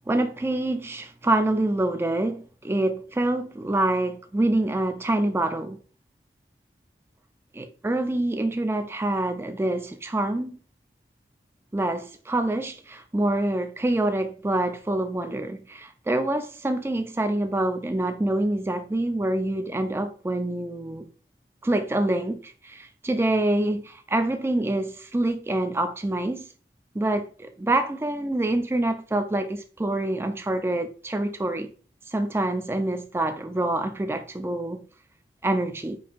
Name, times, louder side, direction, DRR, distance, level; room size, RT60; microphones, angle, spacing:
voice 1, 0.1-5.8 7.5-10.6 11.7-21.1 21.6-26.5 26.9-31.7 32.1-34.8 35.4-36.0, right 1 dB, 15° right, 0.3 m, -26 dB
5.3 x 2.7 x 2.5 m
head